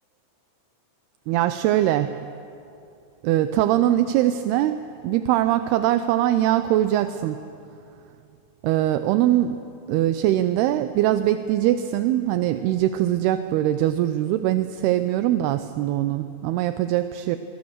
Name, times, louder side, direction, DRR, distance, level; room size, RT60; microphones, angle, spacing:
voice 1, 1.3-2.2 3.2-7.4 8.6-9.6 9.9-17.4, right 13 dB, 80° right, 11 dB, 2.6 m, -22 dB
25.0 x 23.5 x 6.6 m, 2.7 s
omnidirectional pair, 4.7 m